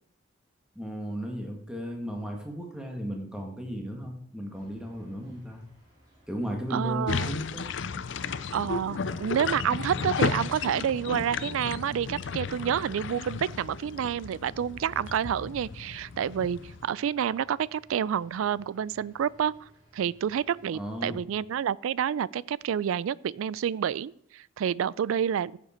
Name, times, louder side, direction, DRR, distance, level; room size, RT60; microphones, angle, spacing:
voice 1, 0.7-5.6 6.3-7.7 20.7-21.2, equal, 5° right, 1.6 m, -35 dB
sound 1, 4.5-21.2, right 1 dB, 20° right, 4.1 m, -59 dB
voice 2, 6.7-7.3 8.5-19.5 19.9-25.6, right 8 dB, 75° right, 0.3 m, -29 dB
sound 2, 7.1-16.9, left 5 dB, 60° left, 0.5 m, -34 dB
15.0 x 7.3 x 4.3 m
head